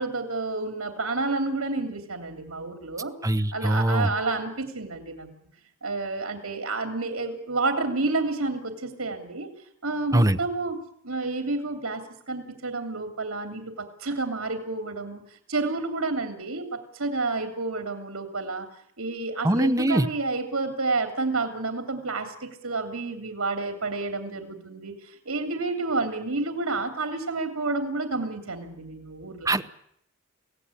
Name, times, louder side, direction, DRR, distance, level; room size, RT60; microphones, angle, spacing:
voice 1, 0.0-3.1 3.5-5.3 5.8-9.5 9.8-10.8 11.0-18.7 19.0-29.6, right 3 dB, 85° right, 5 dB, 3.1 m, -30 dB
voice 2, 3.2-4.1 10.1-10.4 19.4-20.1 29.5-29.6, right 1 dB, 15° right, 10 dB, 1.0 m, -22 dB
24.0 x 17.0 x 9.9 m, 0.71 s
head